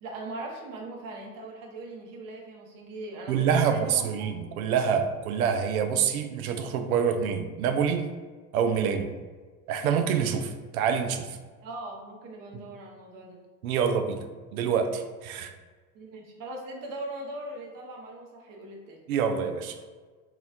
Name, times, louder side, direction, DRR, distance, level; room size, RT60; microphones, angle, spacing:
voice 1, 0.0-4.3 11.6-13.4 15.9-19.0, right 2 dB, 45° right, 0 dB, 1.0 m, -40 dB
voice 2, 3.3-8.1 8.5-9.1 9.7-11.4 13.6-14.2 14.5-15.5 19.1-19.8, right 7 dB, 70° right, 7 dB, 0.5 m, -26 dB
4.0 x 2.9 x 2.4 m, 1.4 s
figure-of-eight pair, 70°, 45 cm